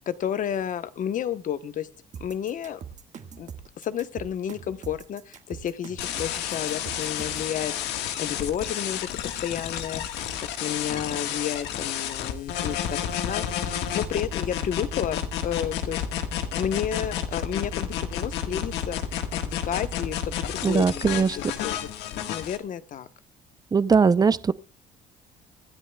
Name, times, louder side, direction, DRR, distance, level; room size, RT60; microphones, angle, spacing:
voice 1, 0.1-1.9 2.2-2.8 3.4-3.5 3.8-7.7 8.2-10.0 10.6-16.0 16.5-19.0 19.4-21.9 22.3-23.1, left 9 dB, 50° left, 1.0 m, -31 dB
sound 1, 2.1-7.5, right 7 dB, 45° right, 1.7 m, -42 dB
sound 2, 6.0-22.6, left 9 dB, 85° left, 1.5 m, -30 dB
voice 2, 20.6-21.4 23.7-24.5, right 5 dB, 25° right, 0.5 m, -20 dB
25.0 x 10.0 x 2.3 m
cardioid pair, 110°, 17 cm